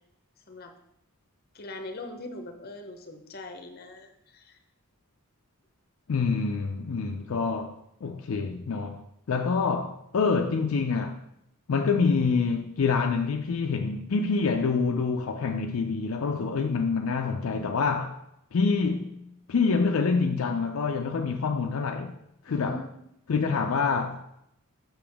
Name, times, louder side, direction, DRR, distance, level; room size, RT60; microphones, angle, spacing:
voice 1, 1.5-4.6 22.5-23.0, left 2 dB, 45° left, 0.8 m, -41 dB
voice 2, 6.1-7.8 8.0-11.2 11.7-18.1 18.5-19.2 19.5-22.2 22.5-22.8 23.3-24.2, left 4 dB, 70° left, 0.4 m, -26 dB
6.9 x 6.0 x 3.5 m
head